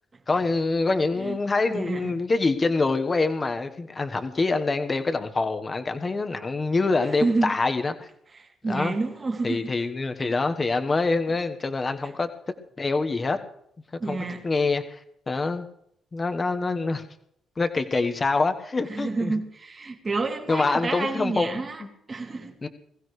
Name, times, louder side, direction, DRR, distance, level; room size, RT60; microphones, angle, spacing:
voice 1, 0.3-8.1 8.7-8.9 9.4-12.3 12.8-13.4 14.1-15.0 15.3-15.7 16.1-17.0 17.6-19.4 20.5-21.9 22.6-22.7, left 3 dB, 30° left, 1.3 m, -25 dB
voice 2, 1.7-2.1 7.2-7.5 8.3-9.7 14.0-14.4 18.9-21.8 22.1-22.5, right 3 dB, 30° right, 2.5 m, -29 dB
21.0 x 15.5 x 3.3 m
cardioid pair, 90°, 0 cm